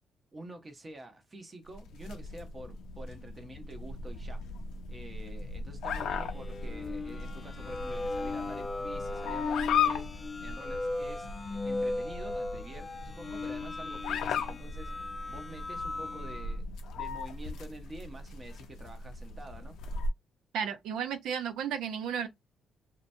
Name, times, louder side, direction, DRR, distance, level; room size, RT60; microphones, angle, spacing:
voice 1, 0.3-4.4 4.9-10.1 10.4-11.3 11.6-14.9 15.3-16.6 17.0-19.8, right 1 dB, 20° right, 0.7 m, -47 dB
sound 1, 1.7-20.1, left 5 dB, 75° left, 0.5 m, -37 dB
sound 2, 6.3-16.5, left 2 dB, 15° left, 0.4 m, -37 dB
voice 2, 20.5-22.3, right 8 dB, 85° right, 0.5 m, -33 dB
2.8 x 2.1 x 2.6 m
cardioid pair, 160°, 0 cm